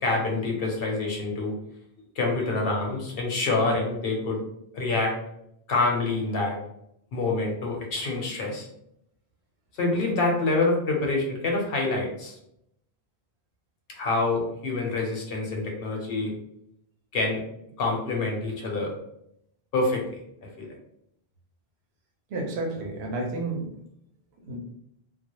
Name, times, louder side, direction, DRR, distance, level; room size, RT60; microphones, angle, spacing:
voice 1, 0.0-1.5 2.2-4.4 4.7-5.1 5.7-6.6 7.1-8.7 9.8-12.3 14.0-16.3 17.1-17.4 17.8-18.9 19.7-20.0 20.6-20.7, left 3 dB, 70° left, 0 dB, 0.9 m, -26 dB
voice 2, 22.3-23.7 24.4-24.6, right 2 dB, 80° right, 0 dB, 0.9 m, -31 dB
2.3 x 2.0 x 2.8 m, 0.76 s
omnidirectional pair, 1.0 m